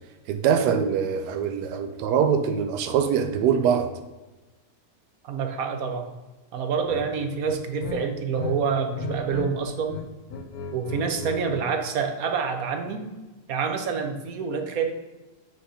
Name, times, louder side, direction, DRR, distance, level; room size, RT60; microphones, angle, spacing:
voice 1, 0.3-3.9, right 7 dB, 85° right, 1.2 m, -23 dB
voice 2, 5.2-6.1 6.5-10.0 10.7-13.1 13.5-14.9, right 6 dB, 65° right, 1.2 m, -27 dB
sound 1, 6.8-7.1 7.4-8.6 8.8-9.5 9.8-11.7, left 5 dB, 70° left, 1.2 m, -36 dB
7.8 x 3.9 x 4.9 m
omnidirectional pair, 1.7 m